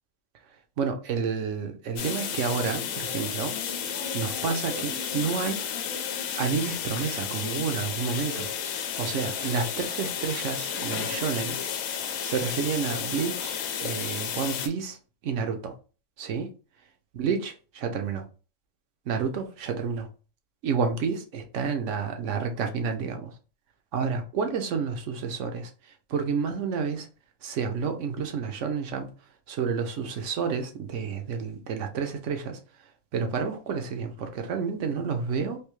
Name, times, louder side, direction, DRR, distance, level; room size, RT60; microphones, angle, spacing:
voice 1, 0.8-3.6 3.8-5.7 6.4-11.6 12.2-15.0 15.2-15.7 16.2-16.5 17.1-18.2 19.1-20.1 20.6-23.3 23.9-27.1 27.4-29.1 29.5-32.6 33.1-35.6, right 6 dB, 70° right, 1.0 m, -30 dB
sound 1, 2.0-14.7, left 8 dB, 80° left, 1.0 m, -32 dB
3.4 x 2.7 x 3.0 m
omnidirectional pair, 1.4 m